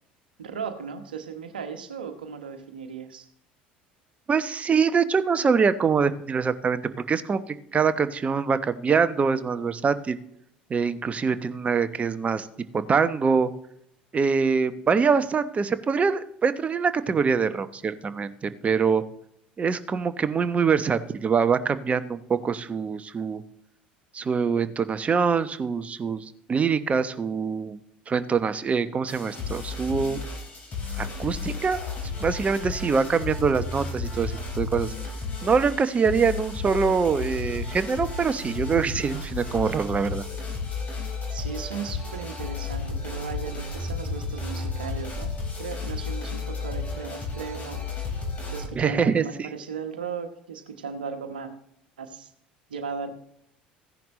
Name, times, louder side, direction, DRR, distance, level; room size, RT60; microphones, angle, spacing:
voice 1, 0.4-3.3 41.3-47.9 48.5-51.5 52.0-52.3 52.7-53.1, right 6 dB, 75° right, 7 dB, 1.2 m, -36 dB
voice 2, 4.3-6.8 7.1-10.2 10.7-12.5 12.9-13.5 14.1-19.0 19.6-23.4 24.1-27.8 28.1-30.2 31.0-31.8 32.2-34.9 35.4-40.2 48.7-49.5, right 5 dB, 25° right, 12 dB, 1.0 m, -24 dB
sound 1, 29.1-48.7, left 4 dB, 35° left, 4.9 m, -33 dB
16.0 x 10.5 x 3.2 m, 0.75 s
figure-of-eight pair, 65°, 5 cm